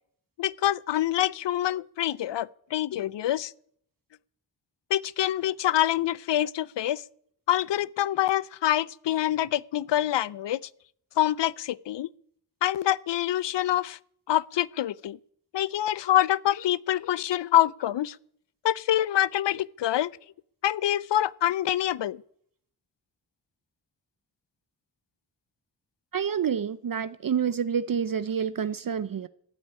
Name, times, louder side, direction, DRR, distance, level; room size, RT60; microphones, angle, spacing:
voice 1, 0.4-3.5 4.9-7.0 7.5-10.6 11.2-12.1 12.6-14.0 14.3-15.2 15.5-18.2 18.6-20.1 20.6-22.2, left 12 dB, 75° left, 0.6 m, -26 dB
voice 2, 26.1-29.3, right 7 dB, 50° right, 0.7 m, -28 dB
14.0 x 9.0 x 8.9 m
cardioid pair, 50°, 43 cm